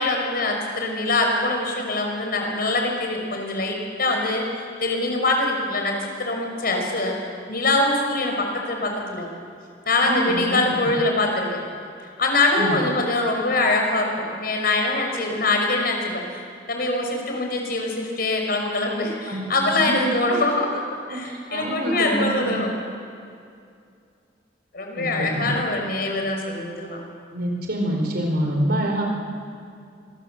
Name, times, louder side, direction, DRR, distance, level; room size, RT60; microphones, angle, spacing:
voice 1, 0.0-4.5 4.8-7.2 7.5-9.3 9.9-11.6 12.2-16.2 16.7-20.8 21.1-22.7 24.7-27.0, left 2 dB, 55° left, 2 dB, 5.7 m, -23 dB
voice 2, 10.0-10.6 10.8-10.9 12.5-12.8 19.3-20.1 21.2-22.6 24.9-25.5 27.3-29.0, right 1 dB, 60° right, 1 dB, 4.9 m, -26 dB
27.0 x 21.5 x 8.0 m, 2.4 s
head